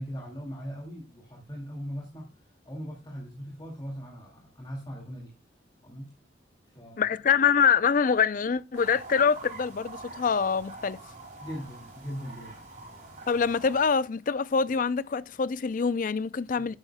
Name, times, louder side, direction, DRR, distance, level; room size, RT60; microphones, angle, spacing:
voice 1, 0.0-2.3 2.6-5.3 5.8-6.1 6.7-7.1 11.4-12.8 16.6-16.7, equal, 25° left, 2.2 m, -39 dB
voice 2, 7.0-11.0 13.3-16.8, left 6 dB, 45° left, 0.4 m, -25 dB
sound 1, 8.7-13.9, right 2 dB, 45° right, 5.2 m, -45 dB
10.5 x 8.9 x 2.2 m
head